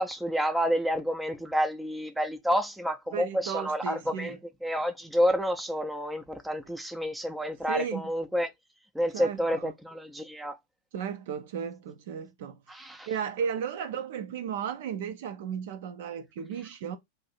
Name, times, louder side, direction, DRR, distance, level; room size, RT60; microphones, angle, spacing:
voice 1, 0.0-4.4 4.6-8.5 8.9-10.6 12.7-13.1, equal, 5° right, 0.5 m, -29 dB
voice 2, 3.1-4.4 7.7-8.0 9.1-9.7 10.9-17.0, right 7 dB, 55° right, 0.5 m, -35 dB
2.7 x 2.6 x 4.2 m
figure-of-eight pair, 90°, 0 cm